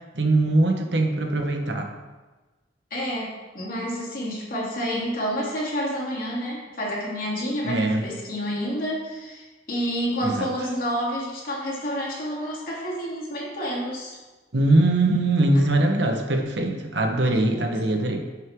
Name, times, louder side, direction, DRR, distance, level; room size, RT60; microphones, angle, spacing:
voice 1, 0.1-1.9 7.6-8.0 10.2-10.5 14.5-18.2, right 2 dB, 80° right, 4 dB, 1.1 m, -21 dB
voice 2, 2.9-14.2 17.2-17.6, equal, 50° left, -5 dB, 2.8 m, -29 dB
11.0 x 6.4 x 3.6 m, 1.2 s
head